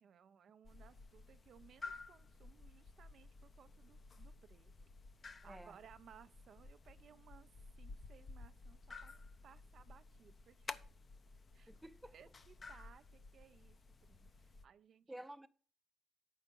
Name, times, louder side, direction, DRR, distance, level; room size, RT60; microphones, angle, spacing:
voice 1, 0.0-4.7 5.4-7.5 7.8-10.8 11.5-13.8 14.1-15.2, right 8 dB, 60° right, 0.5 m, -63 dB
sound 1, 0.6-14.6, left 3 dB, 40° left, 0.6 m, -54 dB
voice 2, 5.4-5.8 11.7-12.1 15.1-15.5, right 1 dB, 10° right, 0.6 m, -51 dB
7.9 x 5.5 x 5.2 m
cardioid pair, 90°, 0 cm